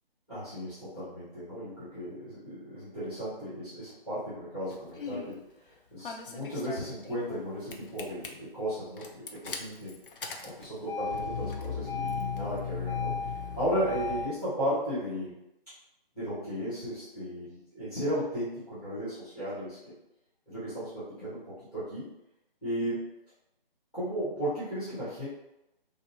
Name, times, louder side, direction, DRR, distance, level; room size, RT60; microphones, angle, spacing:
voice 1, 0.3-5.4 5.9-10.0 10.4-13.3 13.6-15.3 16.2-19.8 20.5-22.0 22.6-23.0 23.9-25.3, equal, 10° left, -13 dB, 0.6 m, -35 dB
Engine starting, 4.7-5.3 6.0-7.4 7.7-8.3 9.0-14.3, left 5 dB, 65° left, 0.4 m, -35 dB
2.6 x 2.1 x 2.6 m, 0.88 s
figure-of-eight pair, 150°, 29 cm